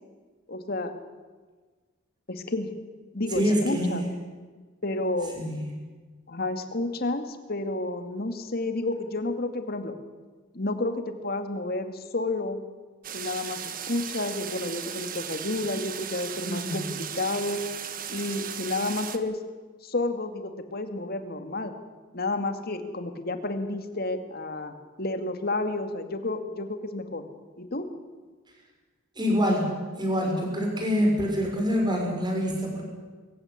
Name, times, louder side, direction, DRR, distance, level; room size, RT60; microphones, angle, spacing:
voice 1, 0.5-0.9 2.3-2.7 3.1-4.0 4.8-5.4 6.3-7.2 7.5-9.9 10.5-12.6 13.1-17.6 18.1-19.4 19.8-21.7 22.1-24.7 25.0-27.2 27.6-27.9, left 2 dB, 50° left, 7 dB, 2.2 m, -30 dB
voice 2, 3.3-4.0 5.4-5.7 16.4-16.9 29.2-29.7 30.0-32.9, equal, 20° right, 1 dB, 6.1 m, -26 dB
sound 1, 13.0-19.2, right 8 dB, 45° right, 1.5 m, -36 dB
23.0 x 15.5 x 9.9 m, 1.4 s
head